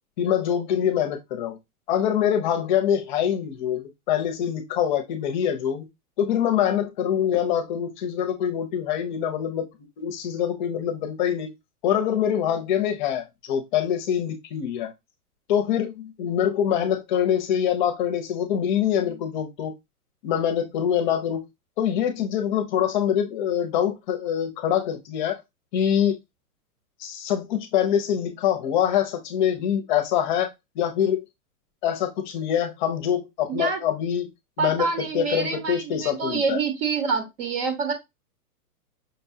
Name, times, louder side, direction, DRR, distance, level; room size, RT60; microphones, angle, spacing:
voice 1, 0.2-1.6 1.9-5.9 6.2-9.7 10.0-11.5 11.8-14.9 15.5-19.7 20.2-21.4 21.8-25.4 25.7-26.1 27.0-30.5 30.8-31.2 31.8-34.3 34.6-34.9 35.1-36.6, left 9 dB, 30° left, 0.7 m, -24 dB
voice 2, 33.5-33.8 34.6-37.9, right 5 dB, 40° right, 1.0 m, -26 dB
5.3 x 2.2 x 2.6 m
hypercardioid pair, 145°, 46 cm